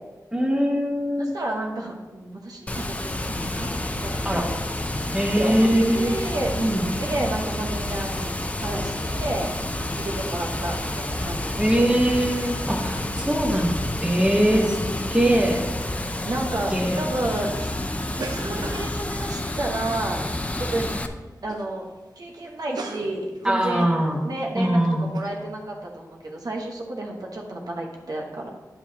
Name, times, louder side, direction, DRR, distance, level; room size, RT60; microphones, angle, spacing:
voice 1, 0.3-1.3 4.2-4.5 5.1-6.1 6.6-6.8 11.6-13.7 14.0-14.9 15.1-15.6 16.7-17.0 23.4-24.2 24.6-25.1, equal, 15° right, 0 dB, 1.2 m, -22 dB
voice 2, 1.2-3.7 4.0-4.3 5.2-5.7 5.9-8.3 8.6-9.5 9.9-12.0 12.8-13.3 14.2-15.5 15.9-17.7 18.2-20.2 20.6-20.9 21.4-21.9 22.2-23.9 24.2-28.5, right 1 dB, 70° right, -1 dB, 1.2 m, -31 dB
Water, 2.7-21.1, left 1 dB, 20° left, 0.5 m, -29 dB
sound 1, 18.0-20.4 20.9-21.1 21.4-21.7 22.0-22.1 22.4-24.2 24.6-24.7 25.1-25.3, right 3 dB, 90° right, 0.7 m, -39 dB
9.8 x 7.1 x 2.9 m, 1.2 s
wide cardioid pair, 85°, 7 cm